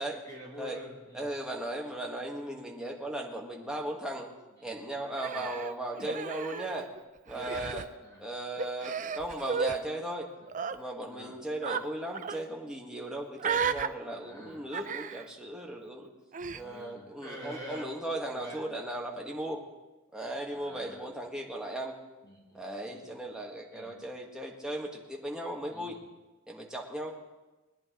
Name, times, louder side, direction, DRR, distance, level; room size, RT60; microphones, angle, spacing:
voice 1, 0.2-1.3 4.6-4.7 5.3-5.5 7.3-8.2 11.1-11.3 14.2-14.6 16.6-17.9 18.3-18.6 20.5-21.0 22.2-23.1 23.7-23.9 25.7-26.0, equal, 15° left, -3 dB, 2.4 m, -46 dB
voice 2, 1.1-4.3 4.6-6.9 7.3-7.8 8.2-10.3 10.7-16.1 16.5-19.6 20.1-22.0 22.5-26.0 26.5-27.1, right 1 dB, 5° right, -1 dB, 1.8 m, -37 dB
Human voice, 5.2-7.0 7.3-7.9 8.6-9.8 10.5-10.8 11.6-11.8 12.1-12.4 13.4-13.9 14.7-15.3 16.3-16.6, right 6 dB, 40° right, 0.5 m, -34 dB
21.5 x 10.5 x 3.9 m, 1.1 s
head